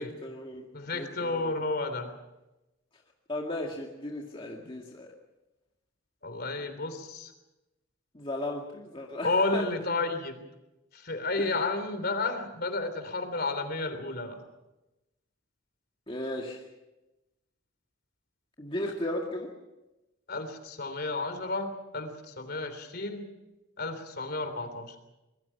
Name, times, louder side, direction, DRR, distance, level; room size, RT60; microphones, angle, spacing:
voice 1, 0.0-1.5 3.3-5.1 8.1-9.6 11.4-11.5 16.1-16.6 18.6-19.5, left 1 dB, 25° left, 0 dB, 2.0 m, -36 dB
voice 2, 0.7-2.1 6.2-7.3 9.2-10.4 10.9-14.4 20.3-23.2 23.8-24.9, left 3 dB, 50° left, 8 dB, 3.3 m, -32 dB
25.0 x 22.0 x 5.9 m, 0.99 s
head